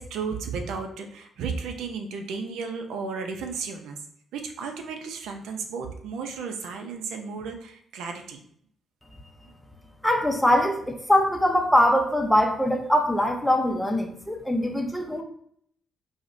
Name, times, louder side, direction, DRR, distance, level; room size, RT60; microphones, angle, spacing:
voice 1, 0.0-4.0 4.3-8.4, right 5 dB, 85° right, 4 dB, 0.5 m, -34 dB
voice 2, 10.0-15.2, left 1 dB, 5° left, 4 dB, 0.5 m, -22 dB
4.8 x 2.1 x 2.5 m, 0.67 s
cardioid pair, 90°, 0 cm